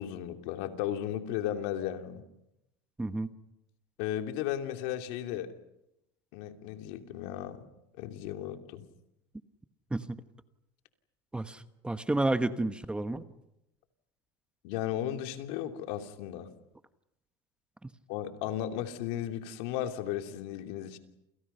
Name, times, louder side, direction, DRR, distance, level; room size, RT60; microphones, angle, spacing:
voice 1, 0.0-2.2 4.0-5.5 6.3-7.6 8.0-8.8 14.6-16.5 18.1-21.0, left 11 dB, 70° left, 5 dB, 2.8 m, -35 dB
voice 2, 3.0-3.3 9.9-10.2 11.3-13.2, right 2 dB, 10° right, 10 dB, 1.1 m, -30 dB
29.0 x 28.5 x 5.7 m, 0.86 s
supercardioid pair, 125°, 13 cm